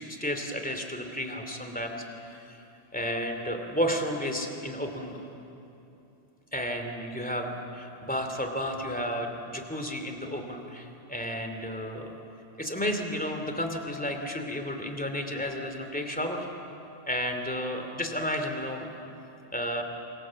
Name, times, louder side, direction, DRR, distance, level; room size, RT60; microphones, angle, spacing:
voice 1, 0.0-2.6 2.9-5.4 6.5-12.2 12.6-16.5 17.1-18.9 19.5-19.8, equal, 10° left, 4 dB, 2.6 m, -32 dB
27.5 x 25.5 x 7.5 m, 2.8 s
omnidirectional pair, 1.1 m